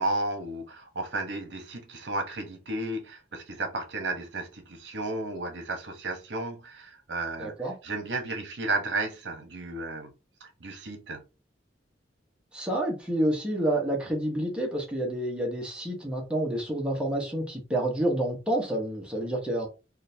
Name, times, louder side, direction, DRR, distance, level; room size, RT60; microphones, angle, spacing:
voice 1, 0.0-10.1 10.4-11.2, right 2 dB, 65° right, 1.0 m, -33 dB
voice 2, 7.4-7.7 12.5-19.7, right 1 dB, 5° right, 1.0 m, -29 dB
3.8 x 2.5 x 2.7 m
head